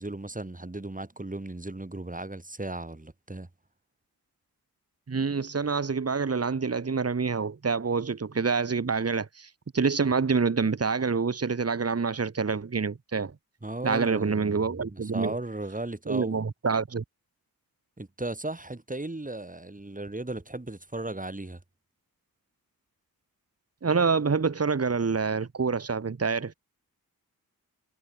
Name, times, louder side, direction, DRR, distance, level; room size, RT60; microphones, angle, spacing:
voice 1, 0.0-3.5 13.6-16.4 18.0-21.6, right 2 dB, 20° right, 6.9 m, -36 dB
voice 2, 5.1-13.3 13.8-15.4 16.1-17.0 23.8-26.5, right 5 dB, 40° right, 2.0 m, -27 dB
cardioid pair, 55°, 37 cm